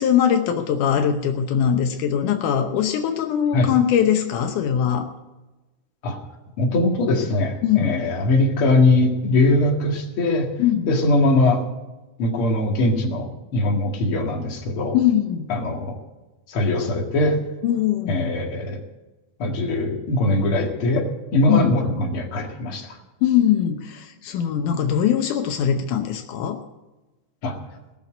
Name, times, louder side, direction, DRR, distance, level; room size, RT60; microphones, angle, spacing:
voice 1, 0.0-5.1 7.6-8.0 10.6-10.9 14.9-15.5 17.6-18.3 21.5-21.8 23.2-26.6, left 9 dB, 80° left, 5 dB, 2.4 m, -21 dB
voice 2, 6.6-10.5 10.9-11.6 12.2-15.0 15.5-15.9 16.5-17.4 18.1-18.8 19.4-22.9 27.4-27.6, left 2 dB, 45° left, 1 dB, 2.7 m, -21 dB
18.5 x 6.8 x 9.0 m, 1.1 s
omnidirectional pair, 3.6 m